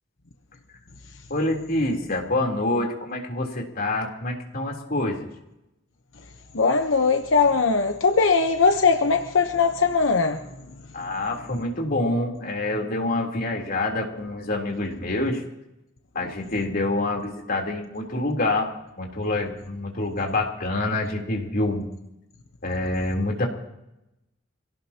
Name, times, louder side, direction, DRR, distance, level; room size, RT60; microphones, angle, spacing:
voice 1, 1.3-5.3 10.9-15.4 16.1-18.7 19.0-21.9 22.6-23.5, left 2 dB, 50° left, 3.6 m, -26 dB
voice 2, 6.5-10.4, left 4 dB, 90° left, 1.0 m, -20 dB
26.0 x 17.5 x 3.0 m
head